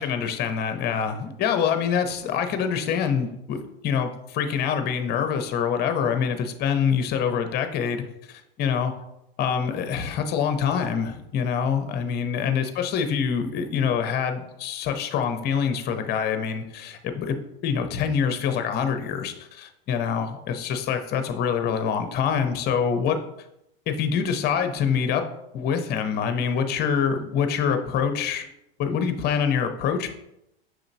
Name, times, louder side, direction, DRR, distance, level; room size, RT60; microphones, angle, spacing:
voice 1, 0.0-3.6 3.8-8.0 8.3-8.9 9.4-17.4 17.6-23.2 23.9-25.2 25.5-28.5 28.8-30.1, left 7 dB, 35° left, 7 dB, 0.6 m, -25 dB
5.9 x 2.9 x 2.6 m, 0.82 s
hypercardioid pair, 100°, 29 cm